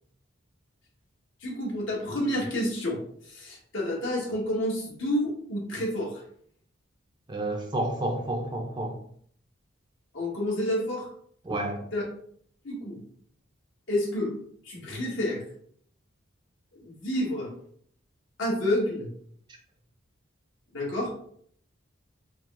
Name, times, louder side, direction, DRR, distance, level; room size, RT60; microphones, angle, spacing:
voice 1, 1.4-6.2 10.1-11.1 11.9-12.0 12.6-13.0 13.9-14.4 14.6-15.4 16.7-17.5 18.4-19.1 20.7-21.1, left 1 dB, 65° left, -4 dB, 1.4 m, -29 dB
voice 2, 7.3-9.0 11.4-11.8, right 1 dB, 20° right, 1 dB, 0.5 m, -30 dB
4.6 x 2.1 x 3.5 m, 0.62 s
head